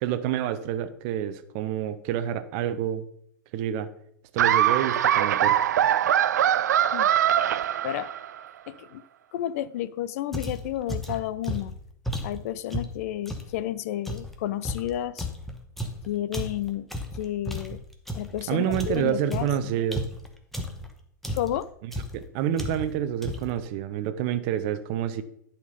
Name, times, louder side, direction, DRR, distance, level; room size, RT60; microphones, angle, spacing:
voice 1, 0.0-3.1 3.5-3.9 4.3-5.6 18.5-20.1 22.1-25.2, right 10 dB, 40° right, 0.7 m, -28 dB
Laughter, 4.4-8.4, right 10 dB, 60° right, 0.4 m, -22 dB
voice 2, 8.7-9.0 9.3-11.7 12.2-15.3 16.1-16.9 17.1-17.8 18.2-19.7 21.3-21.7, left 12 dB, 45° left, 0.4 m, -31 dB
sound 1, 10.3-13.5 14.0-18.4 18.7-20.9 21.2-21.6 21.9-22.2 22.6-23.0 23.2-23.6, equal, ahead, 1.1 m, -33 dB
11.0 x 4.4 x 5.3 m
figure-of-eight pair, 95°, 10 cm